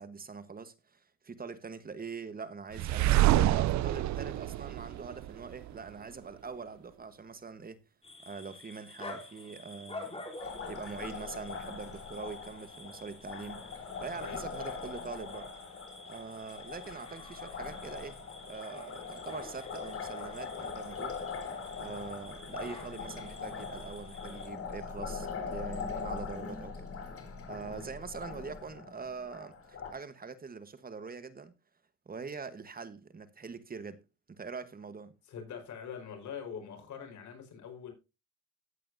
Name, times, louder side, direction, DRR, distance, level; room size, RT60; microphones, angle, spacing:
voice 1, 0.0-7.8 8.2-10.2 10.7-13.7 14.0-15.5 16.1-18.2 18.5-21.2 21.8-26.8 27.5-31.5 32.1-34.0 34.3-35.1, right 5 dB, 30° right, 1.2 m, -43 dB
sound 1, 2.7-5.7, right 14 dB, 70° right, 0.5 m, -27 dB
sound 2, 8.0-24.5, left 2 dB, 20° left, 3.5 m, -49 dB
Liquid, 10.4-29.9, left 5 dB, 50° left, 3.6 m, -42 dB
voice 2, 14.1-14.5 27.7-27.8 35.3-37.9, left 7 dB, 70° left, 4.7 m, -43 dB
14.5 x 8.5 x 2.7 m
cardioid pair, 90°, 30 cm